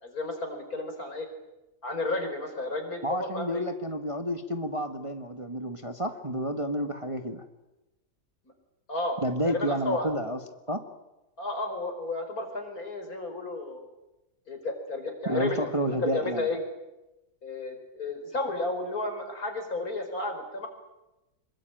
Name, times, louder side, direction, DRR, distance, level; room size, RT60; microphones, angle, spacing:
voice 1, 0.0-1.3 1.8-3.6 8.9-10.1 11.4-13.8 14.5-16.6 17.4-20.7, left 2 dB, 60° left, 5 dB, 5.4 m, -32 dB
voice 2, 3.0-7.4 9.2-10.4 10.7-10.8 15.2-16.5, equal, 20° right, 6 dB, 1.5 m, -30 dB
26.0 x 22.5 x 9.1 m, 0.99 s
omnidirectional pair, 1.7 m